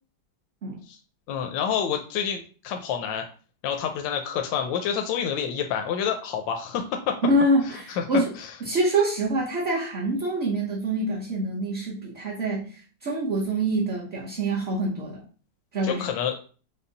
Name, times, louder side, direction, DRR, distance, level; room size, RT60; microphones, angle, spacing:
voice 1, 1.3-3.2 3.6-7.2 7.9-8.0 8.4-8.5 15.8-16.4, left 8 dB, 90° left, 4 dB, 1.3 m, -28 dB
voice 2, 7.3-8.3 8.6-15.2 15.7-16.0, right 1 dB, 45° right, -3 dB, 0.9 m, -25 dB
5.3 x 2.2 x 3.9 m, 0.39 s
omnidirectional pair, 1.9 m